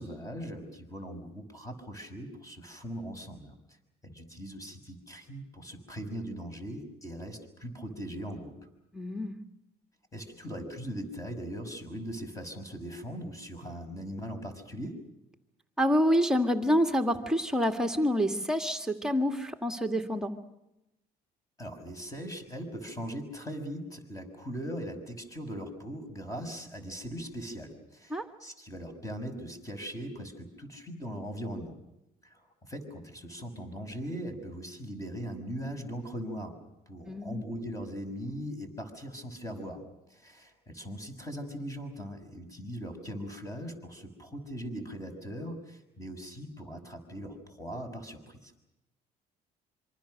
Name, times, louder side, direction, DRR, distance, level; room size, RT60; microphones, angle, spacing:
voice 1, 0.0-3.5 4.0-8.5 10.1-15.0 21.6-31.8 32.2-36.5 36.9-39.8 40.1-48.5, equal, 20° left, 7 dB, 6.2 m, -40 dB
voice 2, 8.9-9.3 15.8-20.3 28.1-28.3 37.1-37.4, equal, 5° right, 5 dB, 2.0 m, -27 dB
26.5 x 25.0 x 6.6 m, 0.89 s
cardioid pair, 110°, 17 cm